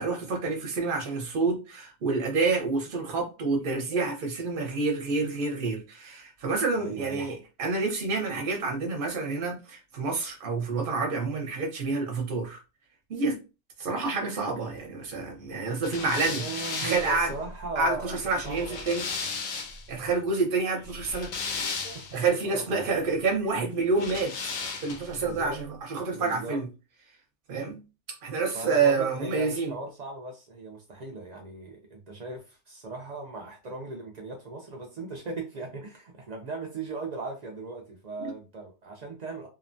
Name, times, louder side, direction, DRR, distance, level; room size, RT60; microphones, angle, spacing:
voice 1, 0.0-12.6 13.1-13.4 13.8-16.4 16.8-17.3 17.8-19.1 19.9-21.3 21.8-24.3 24.8-26.7 27.5-27.8 28.2-29.7 38.2-38.3, right 4 dB, 50° right, 0.8 m, -28 dB
voice 2, 6.8-7.2 16.2-18.9 21.9-22.9 25.1-25.6 26.1-26.6 28.5-39.5, right 3 dB, 80° right, 0.3 m, -38 dB
sound 1, 15.8-19.9 20.8-22.3 23.9-25.2, left 4 dB, 75° left, 1.0 m, -35 dB
2.8 x 2.1 x 2.5 m
omnidirectional pair, 1.4 m